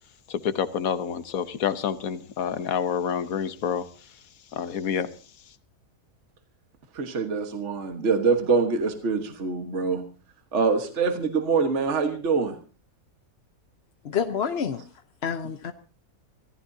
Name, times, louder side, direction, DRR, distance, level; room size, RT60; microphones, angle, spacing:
voice 1, 0.3-4.2 4.5-5.1 5.5-5.6, left 8 dB, 65° left, 12 dB, 1.4 m, -28 dB
voice 2, 6.9-10.0 10.5-12.5, right 5 dB, 50° right, 6 dB, 1.7 m, -24 dB
voice 3, 14.0-14.8 15.2-15.7, left 7 dB, 50° left, 8 dB, 0.9 m, -28 dB
25.0 x 15.0 x 2.7 m, 0.37 s
omnidirectional pair, 1.6 m